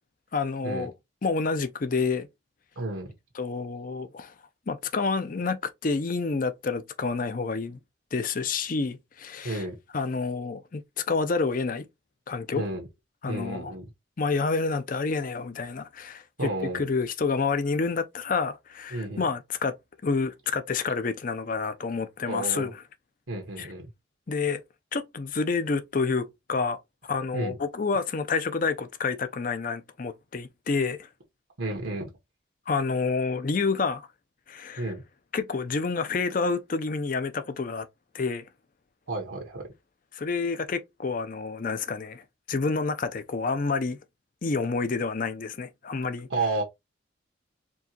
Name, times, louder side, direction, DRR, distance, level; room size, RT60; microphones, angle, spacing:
voice 1, 0.3-0.9 1.2-2.3 3.3-4.3 4.7-7.8 8.1-9.6 9.9-11.9 12.3-12.7 13.2-13.7 14.2-19.8 20.0-22.8 23.6-23.7 24.3-24.6 24.9-31.1 32.7-34.1 34.5-34.9 35.3-37.9 38.1-38.4 40.1-44.0 44.4-46.3, left 4 dB, 40° left, 0.5 m, -29 dB
voice 2, 2.8-3.1 9.4-9.7 12.5-12.8 13.3-13.9 16.4-16.8 18.9-19.3 22.2-22.7 23.3-23.9 27.3-27.6 31.6-32.1 34.8-35.0 39.1-39.7 46.3-46.6, right 2 dB, 85° right, 1.2 m, -31 dB
4.5 x 2.8 x 2.8 m
head